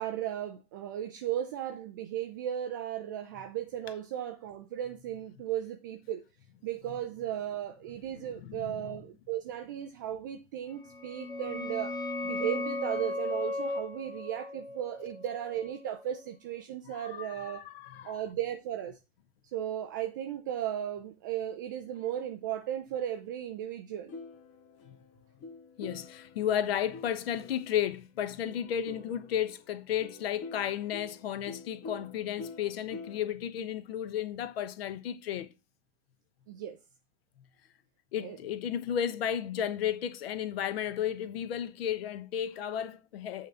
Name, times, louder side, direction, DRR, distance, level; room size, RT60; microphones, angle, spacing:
voice 1, 0.0-6.2 6.6-11.9 12.2-17.6 18.0-19.0 19.5-24.1 36.5-36.8 38.2-38.4, right 11 dB, 15° right, 0.3 m, -36 dB
voice 2, 8.4-8.9 16.8-18.2 24.9-25.0 25.8-35.5 38.1-43.5, left 9 dB, 50° left, 1.1 m, -33 dB
sound 1, 10.8-16.2, left 2 dB, 10° left, 1.3 m, -36 dB
sound 2, 24.1-27.9 28.4-33.3, left 3 dB, 30° left, 1.6 m, -47 dB
8.4 x 3.8 x 6.6 m
figure-of-eight pair, 110°, 39 cm